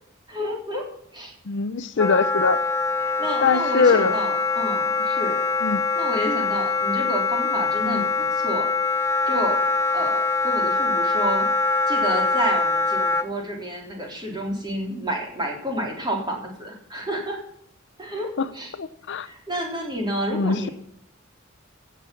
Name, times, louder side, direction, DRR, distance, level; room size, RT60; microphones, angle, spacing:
voice 1, 0.3-0.8 1.1-1.3 3.0-5.4 6.0-8.7 9.3-9.6 9.9-11.5 11.9-17.4 18.0-18.3 18.5-18.7 19.2-20.7, equal, 20° right, 0 dB, 3.7 m, -30 dB
voice 2, 1.5-2.6 3.4-4.2 5.6-5.8 7.9-8.0 18.4-18.5 18.8-19.3 20.3-20.7, left 5 dB, 60° left, 14 dB, 0.6 m, -22 dB
Wind instrument woodwind instrument, 2.0-13.3, left 3 dB, 15° left, 0.7 m, -23 dB
16.5 x 7.3 x 7.1 m, 0.68 s
head